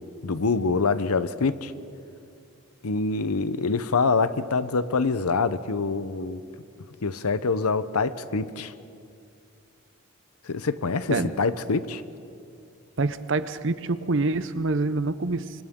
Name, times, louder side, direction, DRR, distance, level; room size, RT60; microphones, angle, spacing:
voice 1, 0.2-1.7 2.8-6.4 7.0-8.7 10.4-12.0, left 4 dB, 85° left, 13 dB, 0.8 m, -25 dB
voice 2, 13.0-15.6, right 3 dB, 55° right, 13 dB, 0.7 m, -26 dB
29.5 x 24.5 x 3.7 m, 2.5 s
head